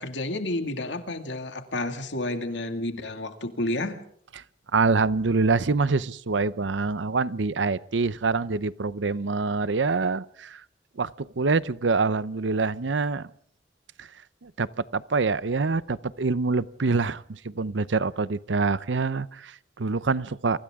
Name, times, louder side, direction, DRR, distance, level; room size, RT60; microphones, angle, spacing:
voice 1, 0.0-4.0, left 1 dB, 75° left, 7 dB, 2.3 m, -30 dB
voice 2, 4.7-10.6 11.0-13.3 14.0-14.1 14.4-14.7 14.9-20.6, right 4 dB, 80° right, 18 dB, 0.7 m, -25 dB
29.5 x 24.5 x 3.7 m, 0.65 s
head